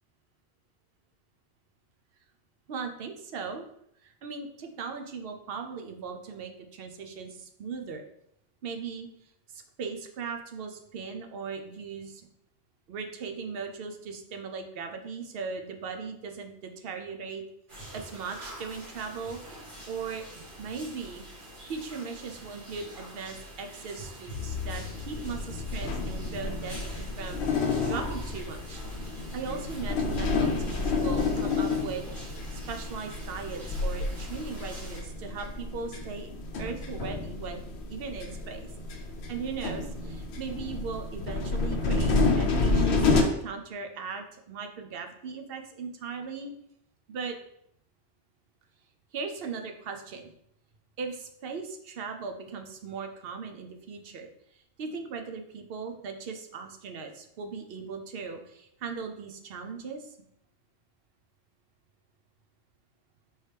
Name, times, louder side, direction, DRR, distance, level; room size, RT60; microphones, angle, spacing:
voice 1, 2.7-3.7 4.0-8.0 8.6-9.1 9.5-12.3 12.9-17.4 17.9-21.2 21.7-28.8 29.3-36.3 36.6-37.6 37.9-38.7 39.3-46.5 47.1-47.4 49.1-50.3 51.0-60.2, right 5 dB, 65° right, 5 dB, 0.8 m, -38 dB
sound 1, 17.7-35.0, right 1 dB, 50° right, 1.6 m, -46 dB
sound 2, 24.3-43.2, left 3 dB, 75° left, 0.9 m, -30 dB
4.5 x 3.2 x 3.3 m, 0.73 s
omnidirectional pair, 1.1 m